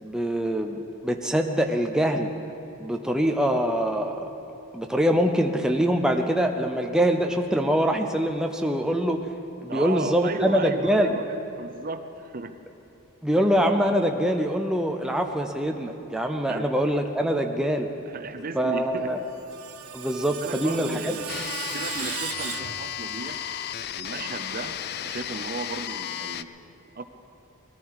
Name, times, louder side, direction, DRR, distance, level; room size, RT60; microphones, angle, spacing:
voice 1, 0.0-2.3 2.8-4.3 4.7-9.2 9.6-11.1 13.2-17.9 18.5-19.2 19.9-21.1, equal, 5° right, 3 dB, 0.6 m, -24 dB
voice 2, 9.7-12.6 13.3-13.5 16.5-16.7 18.1-19.1 20.2-21.3 21.7-26.5 27.0-27.1, right 3 dB, 40° right, 8 dB, 0.6 m, -35 dB
Screech, 19.1-23.4, right 9 dB, 85° right, 0.8 m, -37 dB
sound 1, 21.3-26.4, left 10 dB, 45° left, 0.3 m, -34 dB
19.5 x 14.0 x 4.8 m, 2.8 s
head